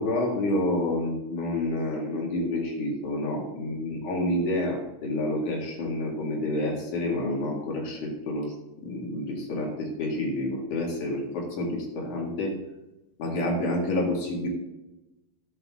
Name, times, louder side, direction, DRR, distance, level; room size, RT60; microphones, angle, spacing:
voice 1, 0.0-8.5 8.8-12.6 13.2-14.5, left 1 dB, 50° left, -1 dB, 2.8 m, -29 dB
13.0 x 9.2 x 3.6 m, 1.0 s
omnidirectional pair, 5.7 m